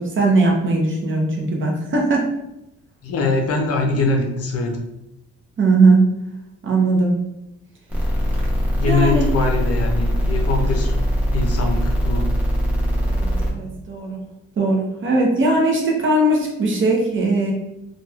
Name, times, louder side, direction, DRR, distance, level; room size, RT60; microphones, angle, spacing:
voice 1, 0.0-2.3 5.6-6.1 6.6-7.2 8.9-9.3 13.0-14.2 14.6-17.5, right 2 dB, 40° right, 0 dB, 0.7 m, -19 dB
voice 2, 3.0-4.8 8.8-11.0 11.3-12.3, left 3 dB, 55° left, 3 dB, 0.5 m, -22 dB
sound 1, 7.9-13.5, equal, 5° right, 0.7 m, -21 dB
2.9 x 2.3 x 2.3 m, 0.89 s
cardioid pair, 90°, 30 cm